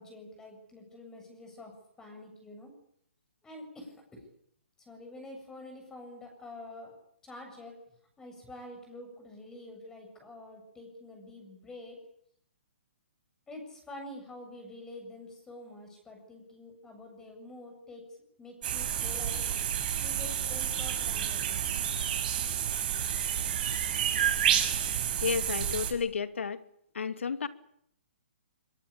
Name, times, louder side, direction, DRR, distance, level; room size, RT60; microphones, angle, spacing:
voice 1, 0.0-2.7 3.4-4.2 4.9-7.0 7.2-7.8 8.2-12.0 13.5-21.4, left 1 dB, 10° left, 3 dB, 7.6 m, -47 dB
sound 1, 18.6-25.9, right 9 dB, 45° right, 6.6 m, -30 dB
voice 2, 25.2-26.6 26.9-27.5, left 6 dB, 85° left, 10 dB, 2.5 m, -31 dB
24.0 x 22.5 x 8.8 m, 0.70 s
hypercardioid pair, 155°, 7 cm